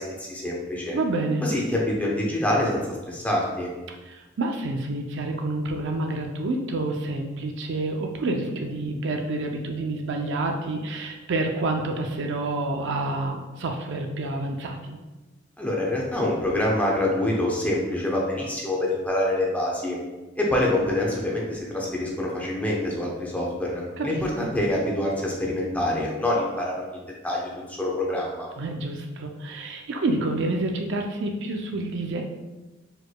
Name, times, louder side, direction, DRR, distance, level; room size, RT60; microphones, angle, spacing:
voice 1, 0.0-1.0 1.4-3.7 15.6-20.0 20.4-28.5, left 1 dB, 10° left, -3 dB, 0.8 m, -26 dB
voice 2, 0.9-1.4 3.9-15.0 24.0-24.5 28.6-32.2, right 2 dB, 60° right, 3 dB, 0.5 m, -28 dB
4.6 x 4.5 x 2.2 m, 1.1 s
head